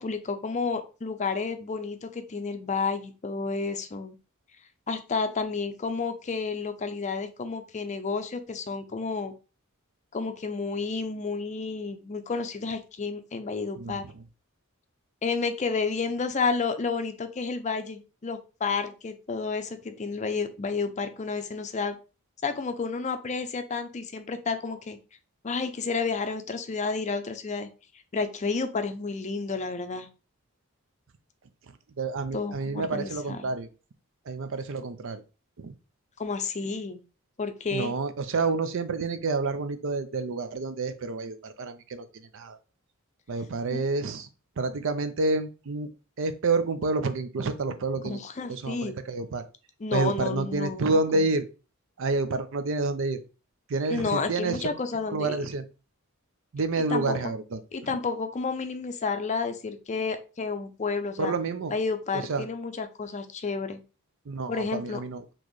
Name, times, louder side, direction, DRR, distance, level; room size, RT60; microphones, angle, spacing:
voice 1, 0.0-4.1 4.9-9.3 10.1-14.1 15.2-22.0 22.4-25.0 25.4-27.7 28.1-30.1 32.3-33.5 36.2-37.0 37.4-38.0 43.7-43.8 48.0-49.0 49.8-51.3 53.9-55.4 56.9-57.3 57.7-61.3 61.7-63.8 64.5-65.0, left 4 dB, 35° left, 8 dB, 0.5 m, -31 dB
voice 2, 32.0-33.7 34.3-35.2 35.6-35.7 37.7-42.6 43.3-44.3 44.6-45.9 46.2-48.2 48.5-49.4 49.9-51.5 52.0-53.2 53.7-54.7 55.1-55.6 56.5-57.6 61.2-61.7 62.1-62.5 64.3-65.2, right 3 dB, 60° right, 10 dB, 0.5 m, -29 dB
4.2 x 3.0 x 3.1 m, 0.32 s
head